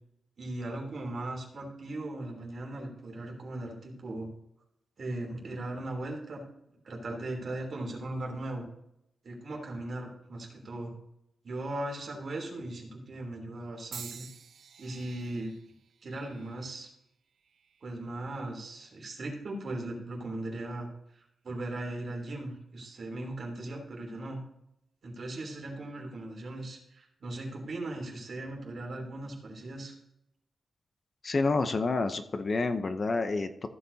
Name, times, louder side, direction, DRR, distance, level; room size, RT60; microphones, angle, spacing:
voice 1, 0.4-4.3 5.0-6.4 6.8-8.6 9.2-10.9 11.4-14.3 14.8-15.5 16.0-16.9 17.8-20.9 21.4-24.4 25.0-29.9, right 2 dB, 55° right, 0 dB, 3.2 m, -38 dB
sound 1, 13.9-18.0 18.8-19.2 20.1-20.3, right 7 dB, 80° right, 0.7 m, -50 dB
voice 2, 31.2-33.7, left 3 dB, 35° left, 9 dB, 0.7 m, -29 dB
15.0 x 8.0 x 2.8 m, 0.81 s
wide cardioid pair, 150°, 0 cm